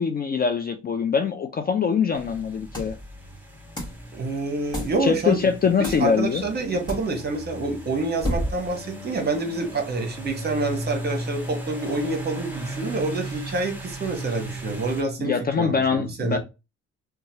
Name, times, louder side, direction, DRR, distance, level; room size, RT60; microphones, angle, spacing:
voice 1, 0.0-3.0 5.0-6.4 15.2-16.4, left 6 dB, 30° left, 7 dB, 0.4 m, -23 dB
sound 1, 2.1-15.0, right 1 dB, 5° right, 0.7 m, -37 dB
sound 2, 2.7-3.1 3.8-4.1 4.7-5.0 5.8-6.1 6.9-7.1 8.2-8.7, equal, 15° left, 1.4 m, -29 dB
voice 2, 4.1-5.4 5.8-16.4, right 2 dB, 35° right, 4 dB, 1.0 m, -27 dB
2.9 x 2.3 x 2.7 m, 0.26 s
cardioid pair, 90°, 30 cm